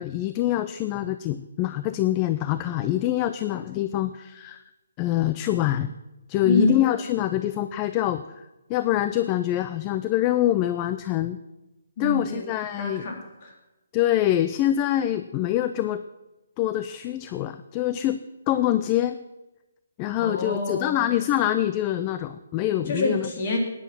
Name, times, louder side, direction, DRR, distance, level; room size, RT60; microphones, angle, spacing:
voice 1, 0.0-4.6 5.0-5.9 6.3-8.4 8.7-11.4 12.0-13.0 13.9-16.0 16.6-18.2 18.5-19.2 20.0-23.3, left 13 dB, 25° left, 12 dB, 0.5 m, -25 dB
voice 2, 6.4-6.8 12.0-12.4 12.8-13.5 20.2-21.1 22.9-23.6, left 2 dB, 45° left, 1 dB, 3.5 m, -26 dB
13.0 x 9.8 x 6.1 m, 1.0 s
figure-of-eight pair, 145°, 0 cm